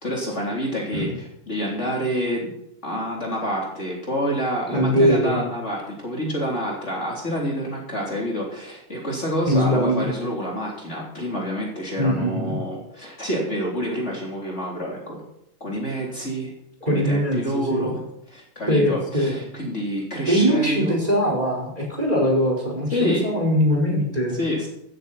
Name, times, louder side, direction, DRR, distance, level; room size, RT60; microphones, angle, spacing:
voice 1, 0.0-2.5 2.8-15.2 15.6-16.5 16.8-18.0 18.3-20.9 22.9-23.3 24.3-24.7, equal, 35° left, -2 dB, 3.8 m, -28 dB
voice 2, 4.7-5.4 9.5-10.1 12.0-12.6 16.9-18.0 18.7-19.3 20.3-24.4, equal, 20° right, -1 dB, 4.6 m, -21 dB
15.5 x 13.5 x 4.3 m, 0.76 s
omnidirectional pair, 2.2 m